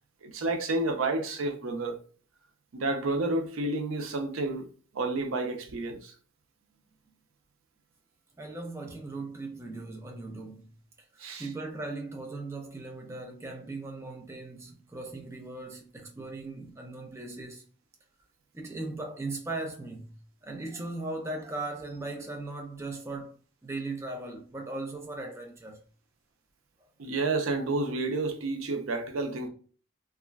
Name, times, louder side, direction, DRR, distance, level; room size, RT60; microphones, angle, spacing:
voice 1, 0.2-2.0 2.7-4.7 4.9-6.1 11.2-11.5 27.0-29.5, right 2 dB, 90° right, 0.5 m, -30 dB
voice 2, 8.4-10.7 11.1-17.7 18.5-20.2 20.4-25.8, right 2 dB, 15° right, 0.3 m, -38 dB
3.0 x 2.4 x 2.2 m
head